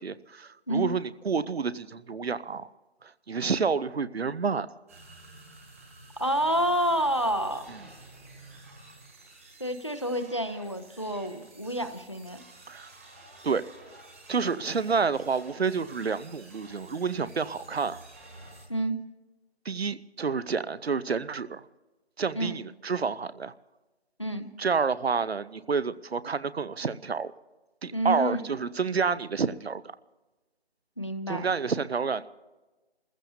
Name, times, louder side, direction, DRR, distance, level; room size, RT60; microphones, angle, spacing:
voice 1, 0.0-2.7 3.0-4.7 12.7-12.9 13.4-13.6 14.3-18.0 19.6-21.6 22.2-23.5 24.6-27.3 27.8-29.8 31.3-32.3, right 5 dB, 70° right, 16 dB, 0.8 m, -29 dB
sound 1, 4.9-18.7, right 2 dB, 15° right, 1.4 m, -51 dB
voice 2, 6.2-7.7 9.6-12.4 18.7-19.0 22.4-22.6 24.2-24.5 27.9-28.5 31.0-31.4, right 1 dB, 30° left, 10 dB, 0.6 m, -29 dB
28.5 x 15.5 x 2.7 m, 1.1 s
figure-of-eight pair, 170°, 32 cm